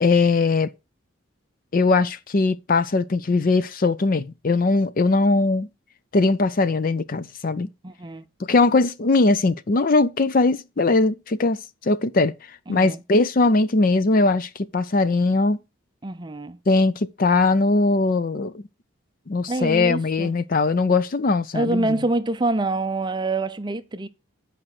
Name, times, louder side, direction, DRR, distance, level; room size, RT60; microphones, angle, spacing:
voice 1, 0.0-0.7 1.7-5.7 6.1-7.7 8.4-12.3 12.7-15.6 16.7-18.6 19.3-22.0, left 3 dB, 40° left, 0.5 m, -20 dB
voice 2, 7.8-8.2 12.7-13.0 16.0-16.6 19.5-20.4 21.5-24.1, right 2 dB, 20° right, 0.5 m, -26 dB
8.2 x 5.0 x 5.9 m
head